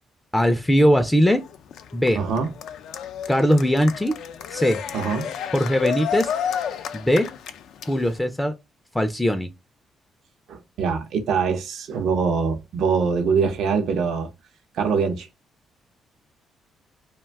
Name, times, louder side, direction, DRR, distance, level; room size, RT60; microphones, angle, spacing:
voice 1, 0.3-1.4 1.9-2.2 3.3-4.2 4.5-4.8 5.5-6.3 6.9-7.3 7.9-8.5 8.9-9.5, equal, 10° left, 0.4 m, -20 dB
Cheering, 1.2-8.2, left 8 dB, 80° left, 0.3 m, -31 dB
voice 2, 2.2-2.5 4.9-5.3 10.5-14.3 14.7-15.3, right 5 dB, 75° right, 0.6 m, -23 dB
2.5 x 2.2 x 3.3 m
cardioid pair, 90°, 0 cm